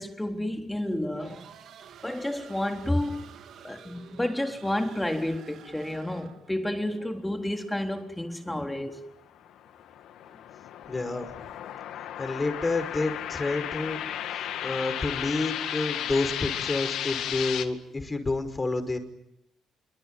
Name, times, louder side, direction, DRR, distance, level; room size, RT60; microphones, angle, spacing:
voice 1, 0.0-1.5 2.0-3.2 3.6-9.1, left 1 dB, 10° left, 3.6 m, -30 dB
sound 1, 1.2-6.6, right 8 dB, 75° right, 3.4 m, -49 dB
sound 2, 9.3-17.7, left 10 dB, 85° left, 2.0 m, -34 dB
voice 2, 10.9-11.3 12.2-14.0 14.6-19.0, left 3 dB, 25° left, 5.3 m, -29 dB
26.0 x 24.5 x 9.3 m
cardioid pair, 90°, 0 cm